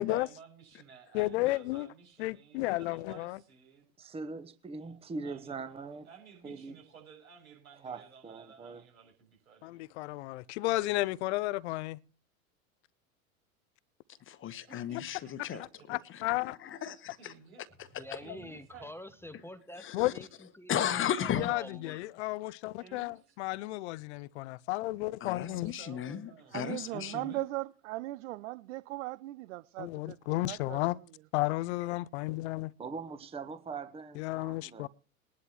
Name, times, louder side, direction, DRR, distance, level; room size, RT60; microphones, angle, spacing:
voice 1, 0.0-3.9 4.8-9.9 14.7-15.0 15.5-15.9 17.2-17.6 18.2-18.9 21.8-22.0 22.8-23.4 25.2-27.4, right 7 dB, 80° right, 7.4 m, -55 dB
voice 2, 1.1-1.9 2.2-3.4 9.6-12.0 15.9-16.6 19.9-20.1 21.3-25.7 29.8-31.0 31.3-32.7 34.2-34.9, left 19 dB, 55° left, 0.6 m, -33 dB
voice 3, 4.0-6.1 6.4-6.8 7.8-8.8 32.8-34.9, right 4 dB, 15° right, 1.1 m, -42 dB
voice 4, 14.3-15.6 16.1-16.2 16.6-17.3 19.8-20.1 20.7-21.5 25.2-27.3, left 9 dB, 30° left, 1.2 m, -35 dB
voice 5, 18.0-22.0, left 1 dB, 5° left, 0.8 m, -47 dB
voice 6, 26.5-30.8, right 18 dB, 60° right, 0.6 m, -38 dB
22.0 x 11.0 x 3.0 m
hypercardioid pair, 95°, 42 cm